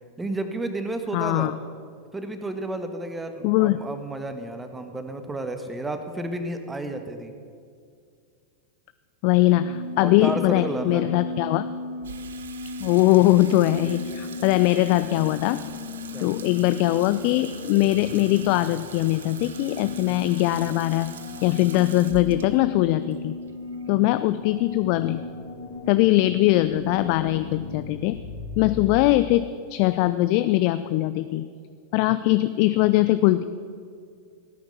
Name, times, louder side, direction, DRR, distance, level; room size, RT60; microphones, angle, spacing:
voice 1, 0.2-1.5 2.1-7.3 10.0-11.1 16.1-16.3 20.1-20.3 23.9-24.2 28.6-28.8 32.1-32.3, right 2 dB, 10° right, 7 dB, 1.4 m, -32 dB
voice 2, 1.1-1.5 3.4-3.8 9.2-11.7 12.8-15.6 16.2-21.1 21.4-23.4 23.9-25.2 25.9-28.2 28.6-31.5 31.9-33.4, left 16 dB, 45° left, 13 dB, 0.4 m, -21 dB
sound 1, 9.5-29.0, left 3 dB, 60° left, 1.6 m, -37 dB
Water tap faucet / Sink (filling or washing), 12.0-24.4, right 6 dB, 65° right, 0.9 m, -43 dB
17.0 x 9.5 x 6.8 m, 2.3 s
figure-of-eight pair, 90°, 0 cm